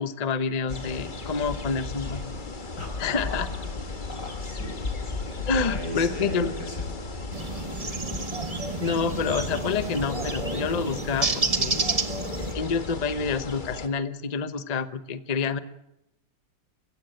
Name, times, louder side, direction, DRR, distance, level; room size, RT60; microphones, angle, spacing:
voice 1, 0.0-2.3 3.0-3.5 5.4-6.5 8.8-11.9 12.5-15.6, left 5 dB, 65° left, 12 dB, 0.3 m, -28 dB
sound 1, 0.7-13.9, left 3 dB, 25° left, 1.5 m, -35 dB
voice 2, 2.8-3.6 4.1-4.7 5.6-6.8, left 1 dB, 50° left, 3 dB, 6.7 m, -37 dB
sound 2, 7.3-12.5, right 3 dB, 25° right, 0.8 m, -30 dB
23.5 x 16.5 x 9.2 m, 0.88 s
omnidirectional pair, 2.4 m